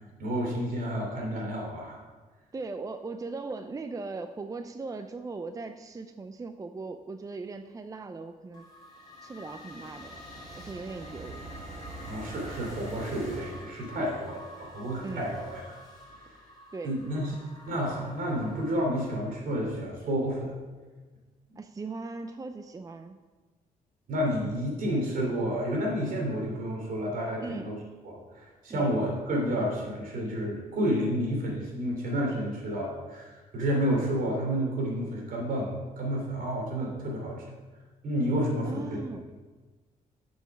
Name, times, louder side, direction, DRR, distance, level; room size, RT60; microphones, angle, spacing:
voice 1, 0.2-2.0 12.1-15.6 16.2-16.3 16.8-17.3 17.7-20.5 24.1-27.8 28.0-37.4 38.0-39.0, equal, 70° right, -1 dB, 3.1 m, -30 dB
voice 2, 2.5-8.6 9.2-10.2 10.5-11.4 15.0-15.3 16.7-17.0 21.6-23.2 27.4-27.8 28.7-28.9 38.7-39.3, right 3 dB, 25° right, 8 dB, 0.5 m, -39 dB
sound 1, 8.5-19.3, left 2 dB, 25° left, 3.2 m, -49 dB
sound 2, 9.0-13.7, right 2 dB, 50° right, 1.9 m, -44 dB
8.6 x 6.4 x 6.0 m, 1.3 s
cardioid pair, 90°, 15 cm